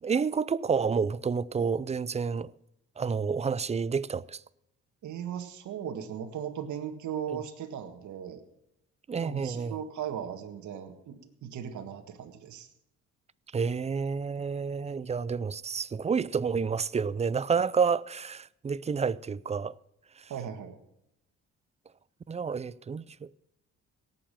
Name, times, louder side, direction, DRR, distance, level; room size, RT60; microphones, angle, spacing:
voice 1, 0.0-2.5 3.0-4.4 7.3-7.4 9.1-9.8 13.5-19.7 22.3-23.3, right 5 dB, 20° right, 0.5 m, -29 dB
voice 2, 5.0-8.4 9.2-12.7 20.3-20.8, right 9 dB, 75° right, 1.7 m, -37 dB
18.0 x 7.3 x 7.5 m
cardioid pair, 90°, 30 cm